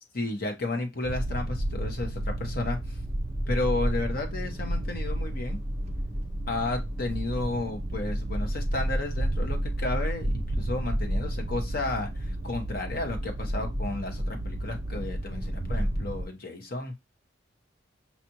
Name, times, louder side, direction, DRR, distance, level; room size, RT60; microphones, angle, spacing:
voice 1, 0.1-3.0 3.5-5.6 6.5-17.0, left 2 dB, 50° left, 4 dB, 1.1 m, -33 dB
sound 1, 1.0-16.2, right 1 dB, 30° right, 0.6 m, -31 dB
5.7 x 2.5 x 2.9 m, 0.21 s
head